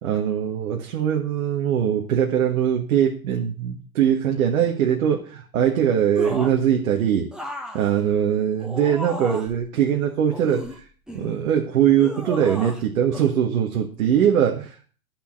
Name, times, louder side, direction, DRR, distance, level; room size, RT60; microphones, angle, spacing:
voice 1, 0.0-7.3 7.7-10.8 11.1-14.8, right 9 dB, 65° right, 1 dB, 1.8 m, -21 dB
sound 1, 6.2-6.7 7.3-9.6 10.3-11.4 12.0-12.9 13.1-13.3, equal, ahead, 1.3 m, -35 dB
10.5 x 5.7 x 7.5 m, 0.41 s
hypercardioid pair, 120°, 43 cm